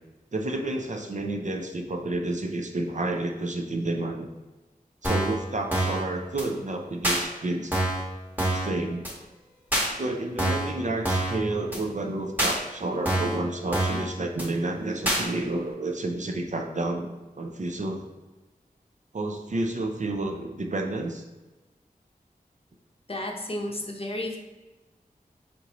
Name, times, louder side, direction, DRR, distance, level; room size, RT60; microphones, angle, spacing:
voice 1, 0.3-4.3 5.0-7.8 8.5-9.2 10.0-17.1 17.4-18.0 19.1-21.2, right 2 dB, 55° right, 3 dB, 0.5 m, -30 dB
sound 1, 5.0-5.4 5.7-6.0 6.4-6.5 7.0-7.2 7.7-8.0 8.4-8.7 9.0-9.1 9.7-9.9 10.4-10.7 11.0-11.4 11.7-11.8 12.4-12.6 13.1-13.4 13.7-14.0 14.4-14.5 15.1-15.2, right 1 dB, 10° right, 1.2 m, -25 dB
voice 2, 23.1-24.4, left 1 dB, 40° left, 1 dB, 0.7 m, -32 dB
4.4 x 3.8 x 3.0 m, 1.2 s
wide cardioid pair, 65°, 15 cm